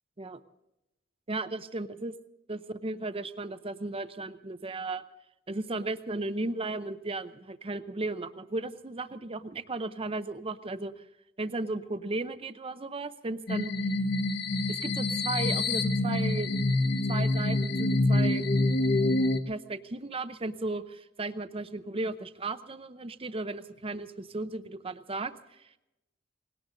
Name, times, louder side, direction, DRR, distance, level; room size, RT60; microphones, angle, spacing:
voice 1, 1.3-2.1 2.5-5.0 5.5-11.0 11.4-13.7 14.7-16.5 17.0-18.5 19.5-25.3, right 2 dB, 30° right, 11 dB, 0.7 m, -35 dB
sound 1, 13.5-19.4, left 2 dB, 60° left, 1.1 m, -26 dB
19.5 x 18.0 x 3.9 m, 0.92 s
head